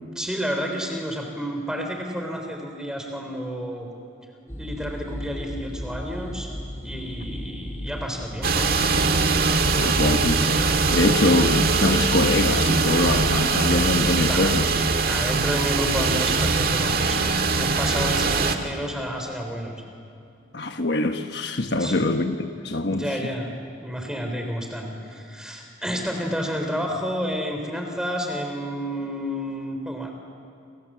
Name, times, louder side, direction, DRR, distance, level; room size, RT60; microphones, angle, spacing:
voice 1, 0.2-3.9 4.6-8.7 14.3-19.8 21.8-22.1 22.9-30.1, equal, 5° right, 3.6 m, -30 dB
sound 1, 4.5-10.9, equal, 15° left, 3.0 m, -35 dB
sound 2, 8.4-18.6, right 4 dB, 50° right, 1.8 m, -22 dB
voice 2, 9.7-10.4 10.9-14.7 20.5-22.3 22.6-23.0, left 2 dB, 55° left, 1.2 m, -23 dB
29.5 x 26.5 x 7.5 m
head